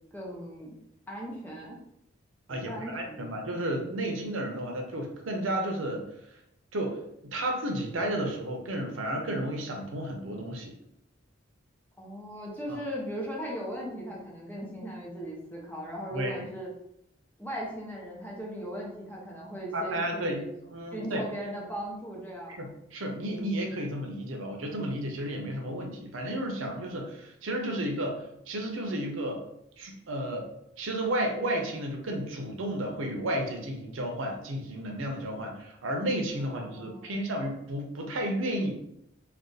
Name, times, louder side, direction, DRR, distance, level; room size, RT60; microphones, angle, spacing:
voice 1, 0.1-0.8 1.1-1.8 2.5-3.3 12.0-16.7 17.4-20.4 20.9-22.7 36.4-37.2, equal, 10° left, -4 dB, 0.8 m, -38 dB
voice 2, 2.5-6.0 6.7-10.7 12.7-12.8 16.1-16.4 19.7-20.4 20.7-21.2 22.5-29.4 29.8-30.5 30.8-38.7, right 1 dB, 90° right, 2 dB, 0.6 m, -32 dB
2.5 x 2.3 x 3.9 m, 0.78 s
head